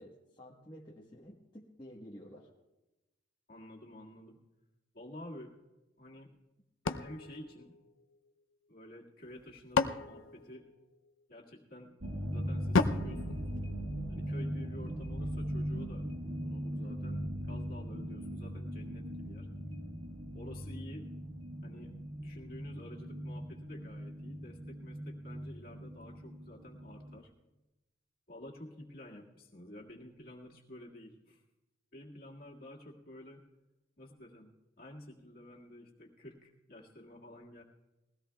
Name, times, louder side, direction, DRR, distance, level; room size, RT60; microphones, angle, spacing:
voice 1, 0.0-2.5, equal, 25° left, -4 dB, 1.2 m, -51 dB
voice 2, 3.5-4.4 4.9-5.6 6.0-6.3 7.0-7.7 8.7-10.7 11.3-12.0 12.3-13.5 14.1-19.5 20.3-21.1 21.6-27.3 28.3-31.4 31.9-33.4 34.0-37.6, left 1 dB, 50° left, -2 dB, 1.9 m, -50 dB
sound 1, 6.9-8.4 9.3-11.2 12.7-14.3, left 4 dB, 85° left, 0.6 m, -34 dB
sound 2, 12.0-27.2, equal, 70° right, 1.8 m, -39 dB
21.5 x 16.5 x 2.3 m, 1.0 s
head